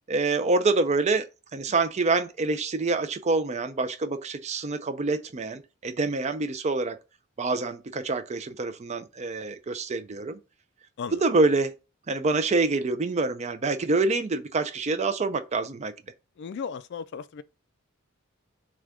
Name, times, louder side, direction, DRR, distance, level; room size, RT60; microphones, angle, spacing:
voice 1, 0.1-1.3 1.5-7.0 7.4-10.4 11.2-11.7 12.1-15.9, right 3 dB, 35° right, 0.4 m, -26 dB
voice 2, 16.4-17.4, left 6 dB, 55° left, 0.3 m, -35 dB
6.0 x 2.3 x 3.6 m
head